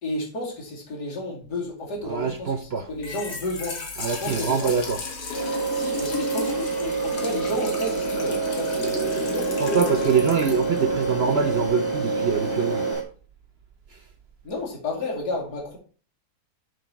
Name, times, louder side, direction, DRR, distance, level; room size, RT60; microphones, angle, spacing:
voice 1, 0.0-3.8 4.2-4.7 5.7-9.5 10.0-10.1 14.4-15.8, left 1 dB, 90° left, 3.1 m, -32 dB
voice 2, 2.0-2.9 4.0-5.0 9.6-12.9, right 6 dB, 55° right, 0.7 m, -24 dB
Trickle dribble / Fill (with liquid), 2.9-11.7, left 3 dB, 75° left, 2.1 m, -34 dB
sound 1, 5.3-13.0, right 5 dB, 20° left, 1.4 m, -28 dB
sound 2, 7.1-12.9, left 2 dB, 45° left, 1.8 m, -34 dB
6.6 x 6.0 x 4.5 m
omnidirectional pair, 1.7 m